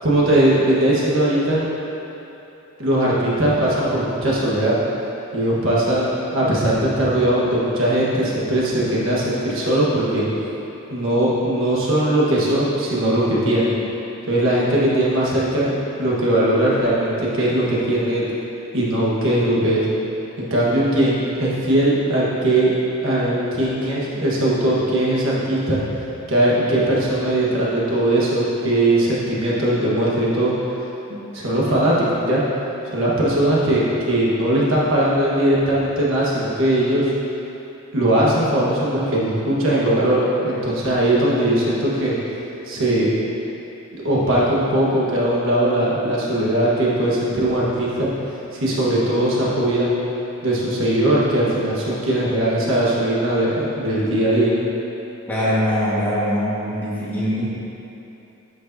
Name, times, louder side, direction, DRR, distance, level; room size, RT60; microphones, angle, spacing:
voice 1, 0.0-1.7 2.8-4.8 5.3-10.2 10.9-13.7 14.3-15.7 16.0-18.2 18.7-19.9 20.4-22.7 23.0-25.8 26.3-30.5 31.1-32.4 32.9-37.1 37.9-42.1 42.6-43.1 43.9-48.1 48.6-49.9 50.4-54.6, right 1 dB, 60° right, -6 dB, 1.4 m, -19 dB
voice 2, 55.3-57.4, equal, 10° left, -9 dB, 1.5 m, -22 dB
10.5 x 6.4 x 2.7 m, 3.0 s
head